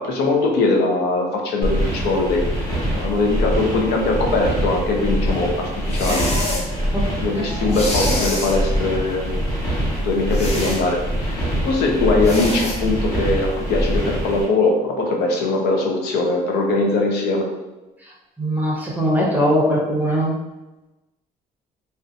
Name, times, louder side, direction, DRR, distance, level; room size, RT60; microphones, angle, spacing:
voice 1, 0.0-2.4 2.9-6.3 7.2-9.4 10.0-17.5, left 3 dB, 80° left, 0 dB, 0.6 m, -21 dB
sound 1, 1.6-14.4, equal, 20° left, 1.3 m, -24 dB
sound 2, 5.9-6.7 7.7-8.6 10.3-10.8 12.2-12.8, left 1 dB, 40° left, 0.7 m, -26 dB
voice 2, 7.3-7.8 18.4-20.3, equal, 10° right, -4 dB, 0.5 m, -21 dB
2.5 x 2.2 x 2.5 m, 1.0 s
cardioid pair, 110°, 17 cm